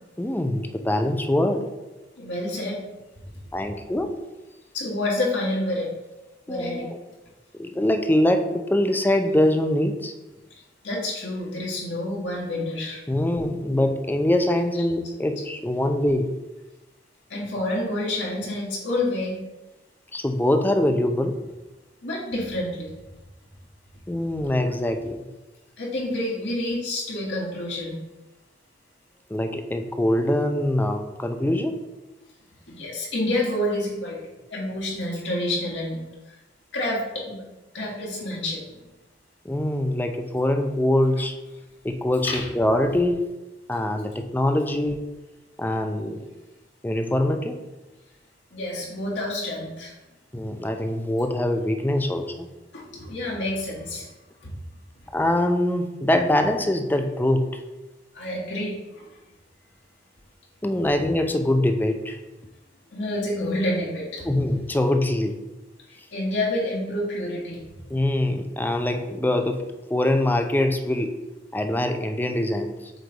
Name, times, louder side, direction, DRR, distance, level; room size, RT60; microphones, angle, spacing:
voice 1, 0.2-1.7 3.5-4.1 6.5-7.0 7.5-10.1 13.1-16.3 20.1-21.4 24.1-25.3 26.1-26.2 29.3-31.8 39.4-41.4 41.8-43.2 43.7-45.2 45.6-46.3 46.8-47.6 50.3-52.5 55.1-57.6 60.6-62.2 64.2-65.4 67.9-69.6 69.9-71.1 71.5-72.9, left 1 dB, 10° left, 5 dB, 0.5 m, -23 dB
voice 2, 2.2-2.8 4.7-5.9 6.5-6.9 10.8-13.0 14.8-14.9 17.3-19.4 22.0-23.0 25.8-28.0 32.7-36.0 36.7-37.4 37.7-38.8 42.2-42.5 48.5-49.9 52.7-54.1 54.4-54.5 58.1-59.2 62.9-64.3 65.9-67.6, left 1 dB, 75° left, -4 dB, 1.9 m, -28 dB
7.9 x 3.4 x 3.9 m, 1.1 s
head